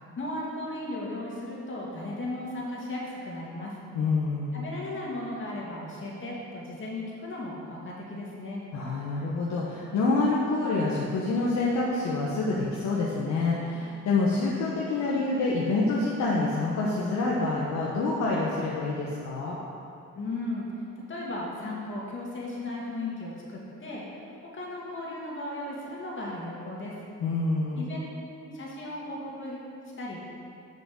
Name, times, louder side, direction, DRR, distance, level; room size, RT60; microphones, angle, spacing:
voice 1, 0.2-3.7 4.5-8.6 20.1-20.7 21.1-24.0 24.5-26.9 27.8-28.0 28.4-29.6 30.0-30.2, left 2 dB, 40° left, -4 dB, 2.3 m, -36 dB
voice 2, 3.9-4.6 8.7-19.6 27.2-27.9, left 3 dB, 70° left, -5 dB, 1.2 m, -27 dB
6.7 x 6.0 x 6.5 m, 2.6 s
cardioid pair, 90°, 30 cm